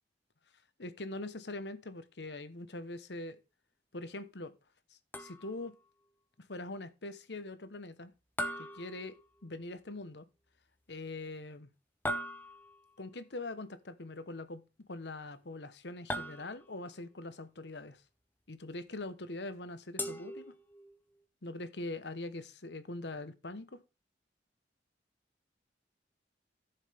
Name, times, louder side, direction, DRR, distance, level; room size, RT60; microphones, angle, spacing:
voice 1, 0.8-3.4 3.9-4.5 4.9-5.7 6.4-8.1 8.6-9.1 9.4-10.3 10.9-11.7 13.0-14.6 14.9-18.0 18.5-20.5 21.4-23.8, left 2 dB, 70° left, 1.1 m, -43 dB
sound 1, 5.1-5.8 8.4-9.6 12.1-12.9 16.1-16.9 20.0-21.0, equal, 10° left, 0.9 m, -40 dB
13.5 x 7.3 x 3.5 m
head